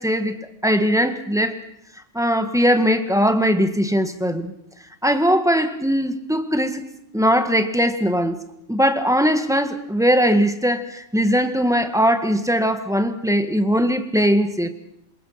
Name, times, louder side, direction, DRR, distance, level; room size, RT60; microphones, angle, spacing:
voice 1, 0.0-1.6 2.1-4.5 5.0-6.8 7.1-8.4 8.7-14.7, equal, 5° right, 7 dB, 1.7 m, -20 dB
27.5 x 21.5 x 5.9 m, 0.77 s
omnidirectional pair, 1.3 m